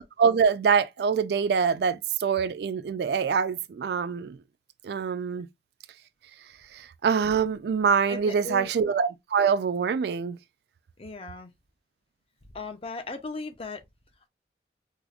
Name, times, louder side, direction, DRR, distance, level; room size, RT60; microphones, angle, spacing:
voice 1, 0.0-4.4 4.8-5.5 6.7-10.4, right 6 dB, 65° right, 0.3 m, -25 dB
voice 2, 8.1-8.7 11.0-11.5 12.5-13.8, left 3 dB, 30° left, 0.5 m, -37 dB
4.8 x 2.0 x 2.4 m
head